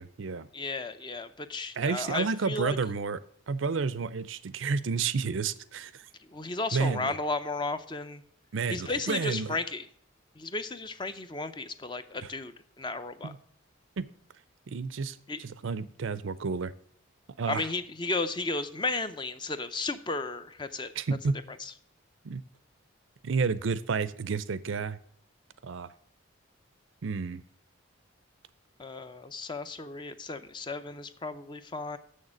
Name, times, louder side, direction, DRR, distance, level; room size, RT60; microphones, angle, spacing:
voice 1, 0.0-0.5 1.8-3.2 3.5-6.1 6.7-7.1 8.5-9.6 13.2-13.4 14.0-14.1 14.7-16.7 17.4-17.7 21.0-21.4 22.2-22.4 23.2-25.0 25.6-25.9 27.0-27.4, right 5 dB, 70° right, 17 dB, 0.5 m, -30 dB
voice 2, 0.5-2.8 6.3-8.2 8.7-9.8 10.4-13.3 15.3-15.4 17.5-20.9 21.6-21.7 28.8-32.0, left 3 dB, 20° left, 11 dB, 0.5 m, -34 dB
6.9 x 6.5 x 7.2 m, 0.65 s
head